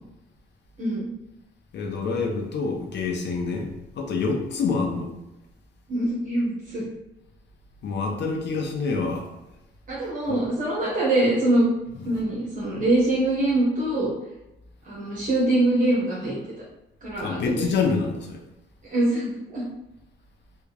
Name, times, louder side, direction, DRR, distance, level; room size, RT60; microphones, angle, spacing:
voice 1, 1.7-3.7 4.0-5.1 7.8-9.3 10.3-10.4 12.0-12.2 17.2-18.4, left 4 dB, 65° left, 3 dB, 0.8 m, -27 dB
voice 2, 5.9-6.8 9.9-11.7 12.0-14.1 14.8-16.4 17.0-17.7 18.8-19.6, right 1 dB, 40° right, -6 dB, 1.1 m, -23 dB
3.5 x 2.3 x 3.3 m, 0.92 s
cardioid pair, 90°, 20 cm